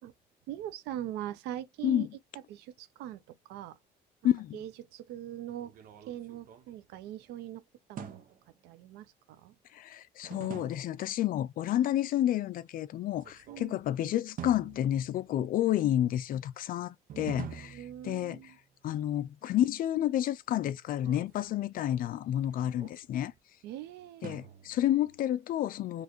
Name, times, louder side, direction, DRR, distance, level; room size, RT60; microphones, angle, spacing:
voice 1, 0.5-2.1 2.5-3.8 4.5-5.8 6.1-7.6 7.9-8.2 8.6-9.5 13.5-13.7 15.4-15.5 17.1-18.6 23.6-24.3, right 12 dB, 90° right, 0.7 m, -42 dB
voice 2, 4.2-4.6 9.7-18.4 18.8-23.3 24.2-26.0, left 12 dB, 55° left, 0.4 m, -30 dB
sound 1, 5.6-7.3 8.0-8.6 10.2-11.1 13.1-13.9 14.4-15.5 17.1-18.5 20.9-23.4 24.2-25.2, right 8 dB, 55° right, 0.8 m, -46 dB
4.3 x 3.1 x 3.0 m
cardioid pair, 110°, 17 cm